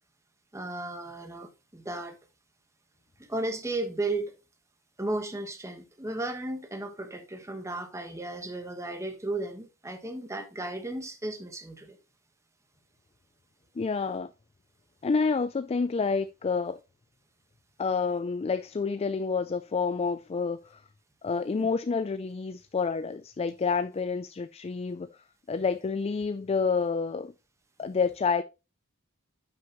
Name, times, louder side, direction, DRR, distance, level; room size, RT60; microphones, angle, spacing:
voice 1, 0.5-2.2 3.3-4.4 5.0-12.0 21.6-21.7, right 2 dB, 15° right, 1.3 m, -34 dB
voice 2, 13.8-14.3 15.0-16.8 17.8-20.8 21.2-25.1 25.5-27.3 27.8-28.4, left 5 dB, 30° left, 0.3 m, -28 dB
9.6 x 6.3 x 3.0 m
head